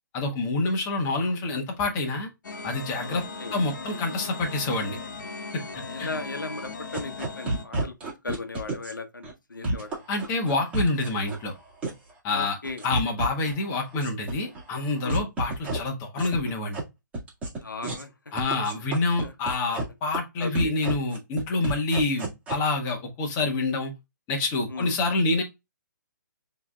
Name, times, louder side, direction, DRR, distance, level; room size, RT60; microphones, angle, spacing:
voice 1, 0.1-2.3 2.6-3.2 3.5-5.0 5.5-5.6 6.0-6.1 10.1-11.5 12.2-12.6 12.8-16.8 18.3-23.9 24.3-25.4, left 2 dB, 25° left, 1.4 m, -27 dB
sound 1, 2.4-7.6, left 4 dB, 70° left, 1.2 m, -38 dB
voice 2, 3.1-3.5 5.9-7.9 8.2-10.0 12.3-12.8 15.0-15.3 17.5-18.4 18.9-19.3 20.4-20.7 24.7-25.0, left 3 dB, 90° left, 1.0 m, -37 dB
sound 2, 6.9-8.9 9.2-9.3 9.6-11.4 11.8-12.1 12.4-13.5 13.8-14.6 14.9-15.8 16.2-16.8 17.1-17.6 17.8-18.0 18.4-19.8 20.1-20.2 20.5-22.5, right 2 dB, 10° right, 1.8 m, -29 dB
6.8 x 3.2 x 2.3 m
hypercardioid pair, 140°, 10 cm